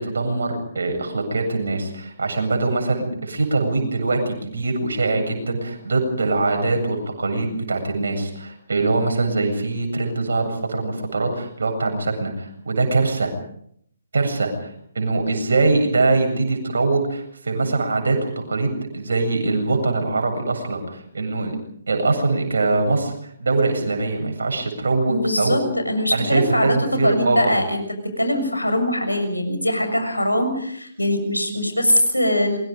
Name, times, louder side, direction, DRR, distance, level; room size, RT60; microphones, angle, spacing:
voice 1, 0.0-13.3 14.1-21.5 21.9-25.7 26.1-27.5, right 3 dB, 65° right, 4 dB, 7.9 m, -22 dB
voice 2, 25.1-32.6, left 1 dB, 90° left, 7 dB, 6.8 m, -22 dB
27.5 x 23.0 x 5.3 m, 0.69 s
figure-of-eight pair, 135°, 0 cm